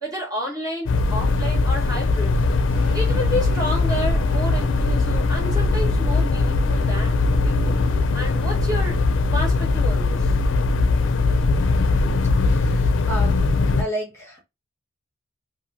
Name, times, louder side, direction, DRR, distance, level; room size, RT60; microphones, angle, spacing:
voice 1, 0.0-2.4 2.9-7.8 8.1-9.0 9.3-10.3, left 1 dB, 20° right, 1.3 m, -30 dB
sound 1, 0.9-13.8, left 3 dB, 75° left, 0.4 m, -20 dB
sound 2, 2.7-8.0, left 1 dB, 45° right, 0.8 m, -39 dB
voice 2, 12.4-13.5 13.8-14.4, equal, 15° left, 1.0 m, -32 dB
2.9 x 2.5 x 2.6 m
head